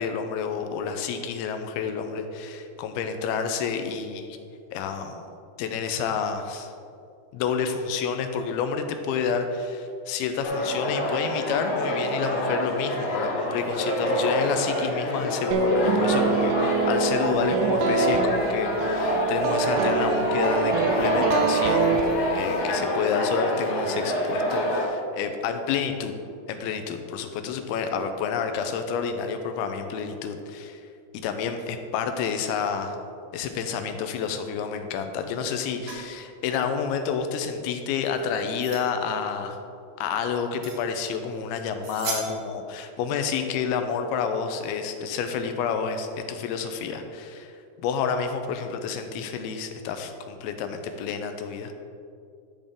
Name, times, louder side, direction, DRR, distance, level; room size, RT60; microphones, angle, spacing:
voice 1, 0.0-4.4 4.7-5.2 5.6-6.7 7.3-22.0 22.3-26.1 26.5-30.8 31.1-33.0 33.3-39.6 40.0-47.5 47.8-51.7, left 6 dB, 90° left, 7 dB, 2.5 m, -29 dB
sound 1, 10.4-24.9, left 1 dB, 50° left, 2.1 m, -27 dB
sound 2, 15.5-22.6, right 4 dB, 80° right, 1.9 m, -25 dB
sound 3, 35.8-36.1 38.1-38.9 40.6-40.8 41.1-41.2 41.8-42.7, right 4 dB, 65° right, 2.3 m, -36 dB
12.0 x 5.3 x 3.6 m, 2.5 s
omnidirectional pair, 4.4 m